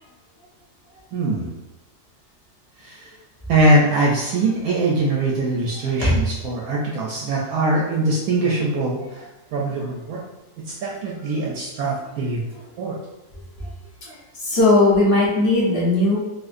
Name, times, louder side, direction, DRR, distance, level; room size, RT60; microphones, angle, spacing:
voice 1, 1.1-1.5 2.8-3.1 3.5-9.3 9.5-10.2 10.7-12.4 12.8-13.0, right 2 dB, 70° right, -3 dB, 1.0 m, -22 dB
voice 2, 14.1-16.2, left 2 dB, 45° left, -6 dB, 1.1 m, -18 dB
4.3 x 2.4 x 2.5 m, 0.99 s
omnidirectional pair, 1.7 m